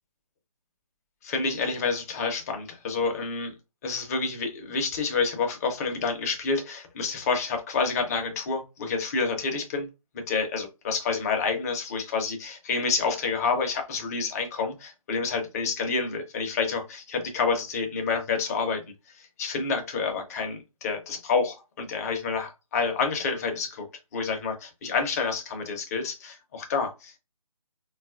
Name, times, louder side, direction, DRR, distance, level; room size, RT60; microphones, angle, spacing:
voice 1, 1.2-3.5 3.8-9.9 10.1-18.8 19.1-23.9 24.1-27.2, left 4 dB, 25° left, 0.6 m, -28 dB
3.9 x 2.3 x 2.4 m
figure-of-eight pair, 150°, 18 cm